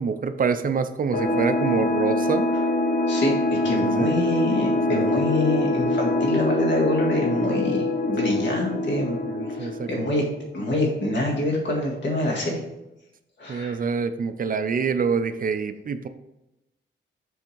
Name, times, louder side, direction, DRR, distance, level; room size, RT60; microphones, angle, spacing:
voice 1, 0.0-2.5 3.8-4.1 4.9-5.2 9.2-10.1 13.5-16.1, right 5 dB, 40° right, 10 dB, 0.5 m, -26 dB
sound 1, 1.1-10.5, left 2 dB, 40° left, 0.8 m, -24 dB
voice 2, 3.1-9.2 9.6-10.2 10.5-12.6 13.4-13.8, left 1 dB, 60° left, -2 dB, 1.9 m, -26 dB
7.1 x 3.5 x 4.5 m, 0.94 s
wide cardioid pair, 135°, 21 cm